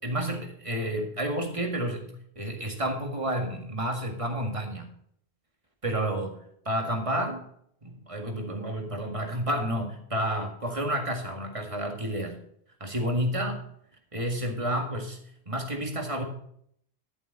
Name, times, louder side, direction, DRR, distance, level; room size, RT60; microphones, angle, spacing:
voice 1, 0.0-4.9 5.8-6.4 6.7-7.4 7.8-12.4 12.8-13.6 14.1-15.2 15.5-16.2, right 1 dB, 30° right, 3 dB, 2.0 m, -30 dB
12.0 x 7.8 x 4.2 m, 0.66 s
omnidirectional pair, 1.2 m